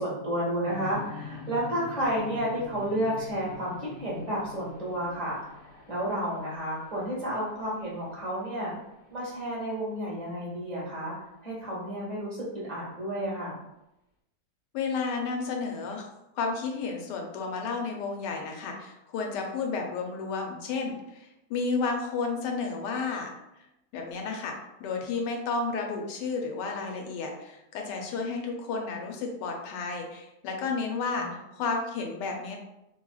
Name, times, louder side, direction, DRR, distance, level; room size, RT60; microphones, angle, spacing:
voice 1, 0.0-8.7 9.1-11.1 11.4-13.6 31.1-31.3, equal, 25° right, -7 dB, 1.2 m, -31 dB
sound 1, 0.6-9.5, left 4 dB, 55° left, 0.6 m, -45 dB
voice 2, 14.7-16.1 16.3-23.3 23.9-32.6, left 4 dB, 90° left, 2 dB, 1.3 m, -32 dB
3.1 x 3.0 x 2.3 m, 0.88 s
omnidirectional pair, 1.8 m